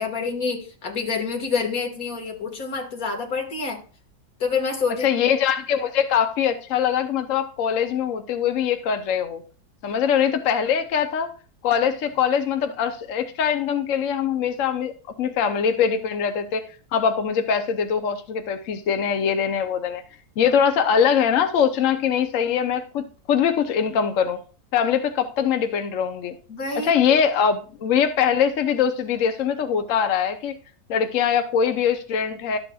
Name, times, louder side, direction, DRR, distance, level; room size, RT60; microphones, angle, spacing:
voice 1, 0.0-3.8 4.4-5.3 26.5-27.2, left 5 dB, 45° left, 1 dB, 2.0 m, -27 dB
voice 2, 5.0-9.4 9.8-11.3 11.6-14.9 15.2-20.0 20.4-24.4 24.7-26.4 26.8-30.6 30.9-32.6, left 7 dB, 70° left, 8 dB, 0.7 m, -22 dB
12.0 x 7.6 x 2.3 m, 0.37 s
omnidirectional pair, 2.2 m